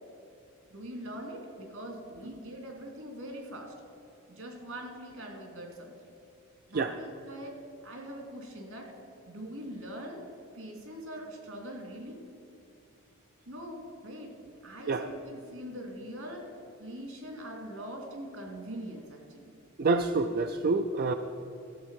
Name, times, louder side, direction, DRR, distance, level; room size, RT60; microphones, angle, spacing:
voice 1, 0.7-3.7 4.3-6.1 6.7-8.9 9.3-10.2 10.5-12.2 13.5-14.3 14.6-16.5 16.8-19.5, equal, 70° right, 1 dB, 2.8 m, -42 dB
voice 2, 19.8-21.1, right 3 dB, 45° right, 7 dB, 0.4 m, -27 dB
14.0 x 8.0 x 5.7 m, 2.7 s
head